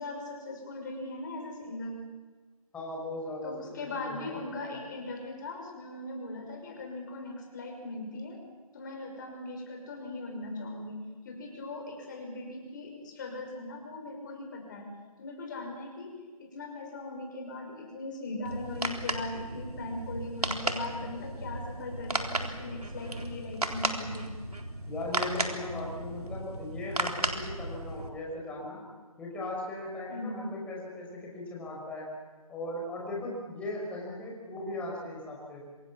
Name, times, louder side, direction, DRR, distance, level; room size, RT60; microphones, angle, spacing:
voice 1, 0.0-2.0 3.4-8.4 8.7-14.9 15.2-24.3 30.1-30.4, left 2 dB, 30° left, 3 dB, 6.0 m, -39 dB
voice 2, 2.7-4.4 24.8-28.8 29.2-32.1 32.5-35.6, left 1 dB, 5° left, -3 dB, 5.1 m, -38 dB
sound 1, 18.4-28.1, right 2 dB, 85° right, 3.8 m, -35 dB
26.5 x 24.0 x 7.4 m, 1.3 s
figure-of-eight pair, 160°, 19 cm